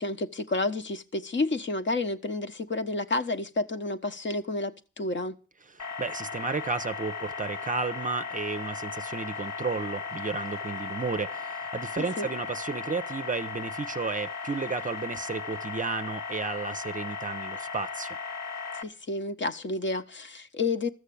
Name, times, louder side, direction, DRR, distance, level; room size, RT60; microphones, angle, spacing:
voice 1, 0.0-5.4 12.0-12.3 18.8-20.9, left 2 dB, 40° left, 1.2 m, -30 dB
voice 2, 5.7-18.2, right 4 dB, 25° right, 0.7 m, -33 dB
sound 1, 5.8-18.8, left 5 dB, 60° left, 1.6 m, -36 dB
13.5 x 6.5 x 8.5 m
supercardioid pair, 60°, 29 cm